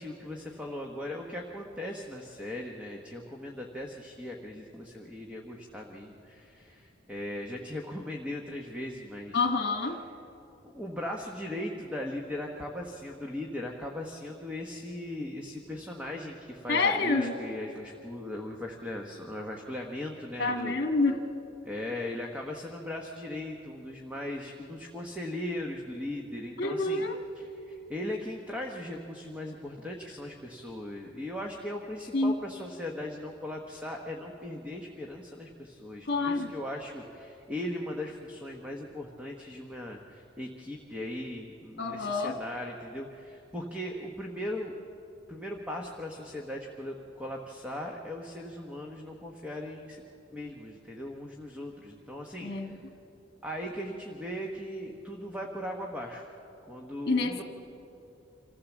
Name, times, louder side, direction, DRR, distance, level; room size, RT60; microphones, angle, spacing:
voice 1, 0.0-9.5 10.6-20.8 21.6-27.1 27.3-44.7 45.3-50.0 50.3-52.8 53.4-56.3 56.7-57.4, left 1 dB, 5° right, 0 dB, 1.2 m, -38 dB
voice 2, 9.3-10.0 16.7-17.3 20.4-21.2 26.6-27.2 32.1-32.3 36.1-36.5 41.8-42.3 52.4-52.8 57.1-57.4, left 3 dB, 55° left, 5 dB, 1.6 m, -27 dB
26.5 x 15.5 x 7.3 m, 2.8 s
head